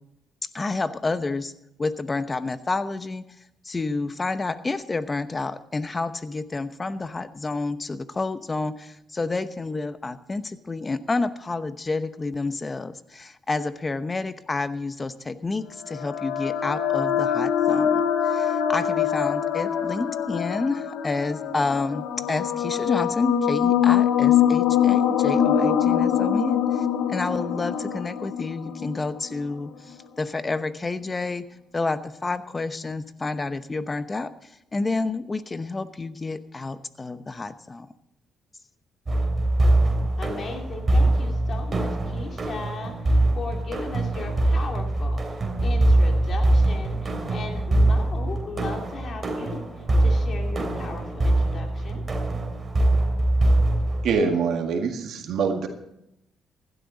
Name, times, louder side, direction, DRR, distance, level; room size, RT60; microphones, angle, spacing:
voice 1, 0.5-1.5 1.8-3.2 3.6-31.5 31.7-34.3 34.7-37.9, left 3 dB, 25° left, 12 dB, 0.9 m, -29 dB
sound 1, 15.8-29.4, left 9 dB, 85° left, 1.1 m, -23 dB
sound 2, 39.1-54.1, right 1 dB, 35° right, 3.1 m, -23 dB
voice 2, 40.2-52.0, left 3 dB, 50° left, 2 dB, 2.9 m, -37 dB
voice 3, 54.0-55.7, right 5 dB, 75° right, 4 dB, 1.9 m, -24 dB
16.0 x 12.0 x 4.1 m, 0.83 s
cardioid pair, 90°, 0 cm